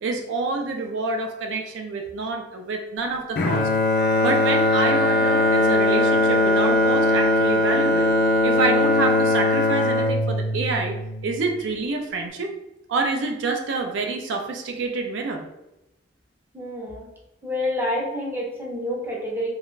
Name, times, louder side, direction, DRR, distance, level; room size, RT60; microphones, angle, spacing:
voice 1, 0.0-3.7 4.2-8.1 8.4-11.0 11.2-12.5 12.9-15.4, right 3 dB, 75° right, 4 dB, 0.4 m, -27 dB
Bowed string instrument, 3.4-11.6, left 1 dB, 50° left, 0.3 m, -20 dB
Wind instrument woodwind instrument, 3.9-7.1, left 3 dB, 30° right, 0.9 m, -35 dB
voice 2, 16.5-17.1 17.4-19.5, left 1 dB, 10° right, -3 dB, 0.5 m, -28 dB
2.3 x 2.1 x 3.1 m, 0.94 s
head